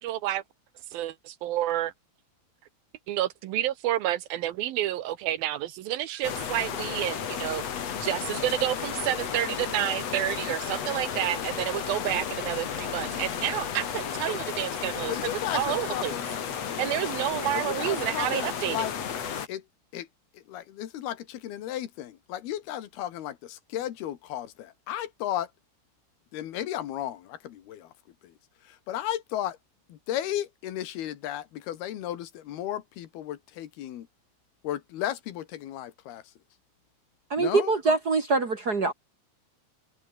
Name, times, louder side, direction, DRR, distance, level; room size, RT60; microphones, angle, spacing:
voice 1, 0.0-0.4 0.9-1.9 3.1-7.6 8.0-15.2 15.5-16.2 16.8-18.9, right 13 dB, 75° right, 2.8 m, -29 dB
sound 1, 6.2-19.5, left 8 dB, 50° left, 3.0 m, -33 dB
voice 2, 15.1-16.3 17.5-18.9 19.5-19.6 19.9-20.1 20.4-25.5 26.3-27.9 28.2-28.3 28.7-29.6 29.9-34.1 34.6-36.2 37.4-37.8, left 12 dB, 85° left, 3.6 m, -34 dB
voice 3, 37.3-38.9, right 3 dB, 45° right, 1.2 m, -24 dB
omnidirectional pair, 4.4 m